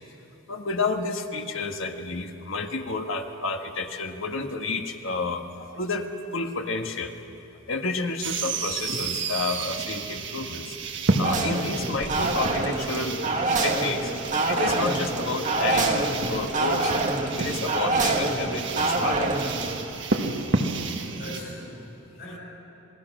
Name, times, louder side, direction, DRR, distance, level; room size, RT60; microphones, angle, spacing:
voice 1, 0.5-6.1 6.3-7.1 7.7-10.7 11.2-13.3 13.6-14.1 14.5-16.9 17.4-19.3 21.0-21.1, left 3 dB, 70° left, 4 dB, 1.5 m, -30 dB
sound 1, 8.2-21.4, right 3 dB, 55° right, 1.5 m, -31 dB
sound 2, 11.2-19.8, right 2 dB, 35° right, 1.7 m, -26 dB
voice 2, 21.1-22.4, equal, 45° left, -6 dB, 7.2 m, -41 dB
27.0 x 19.5 x 6.1 m, 3.0 s
head